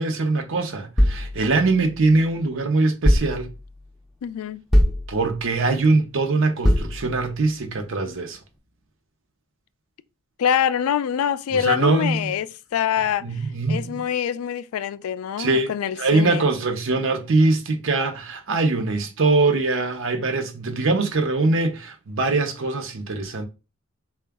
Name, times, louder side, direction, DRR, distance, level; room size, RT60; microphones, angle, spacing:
voice 1, 0.0-3.5 5.1-8.4 11.6-12.3 13.2-14.0 15.4-15.7 16.0-23.5, right 3 dB, 65° right, 0.7 m, -22 dB
sound 1, 1.0-2.4 3.0-3.9 4.7-5.6 6.6-7.5, equal, ahead, 0.5 m, -22 dB
voice 2, 4.2-4.6 10.4-16.5, left 8 dB, 80° left, 0.3 m, -25 dB
3.8 x 2.3 x 3.4 m
head